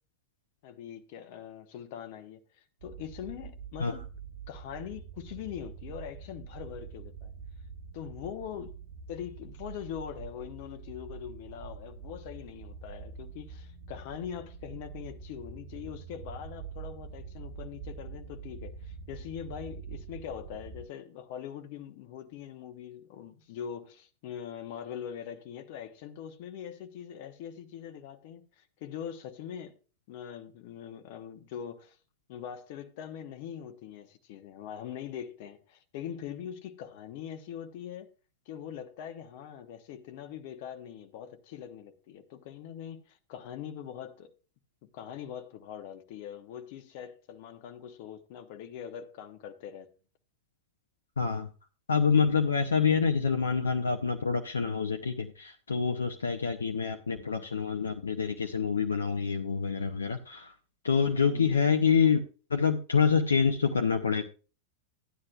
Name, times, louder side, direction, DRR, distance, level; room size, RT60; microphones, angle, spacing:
voice 1, 0.6-4.1 4.5-7.3 7.9-8.8 9.1-29.7 30.1-32.0 32.3-38.1 38.5-44.3 44.8-49.9 61.3-61.6, left 9 dB, 50° left, 1.0 m, -42 dB
sound 1, 2.8-20.8, right 5 dB, 65° right, 1.4 m, -45 dB
voice 2, 51.2-51.5 51.9-60.5 60.8-62.2 62.5-64.2, left 6 dB, 70° left, 0.7 m, -26 dB
13.5 x 9.8 x 2.4 m
figure-of-eight pair, 90°, 0 cm